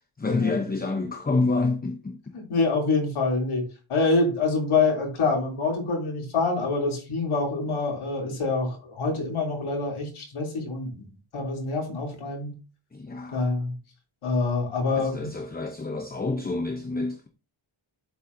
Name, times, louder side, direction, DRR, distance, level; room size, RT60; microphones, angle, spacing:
voice 1, 0.2-2.2 12.9-13.5 14.9-17.3, left 3 dB, 20° left, 0.8 m, -28 dB
voice 2, 2.3-3.6 3.9-11.1 11.3-12.5 13.3-13.7 14.2-15.3, left 3 dB, 90° left, 3.4 m, -26 dB
8.0 x 7.2 x 2.7 m
wide cardioid pair, 140°, 48 cm